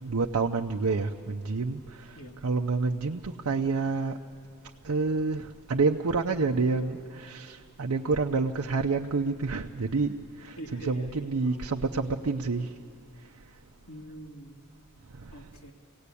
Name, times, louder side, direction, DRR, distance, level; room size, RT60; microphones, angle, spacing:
voice 1, 0.0-2.2 2.4-4.2 4.8-12.7 15.1-15.4, right 4 dB, 75° right, 3 dB, 0.6 m, -28 dB
voice 2, 10.6-11.7 13.9-14.6 15.3-15.7, right 1 dB, 75° left, 0 dB, 2.4 m, -44 dB
26.0 x 17.5 x 8.4 m, 2.4 s
head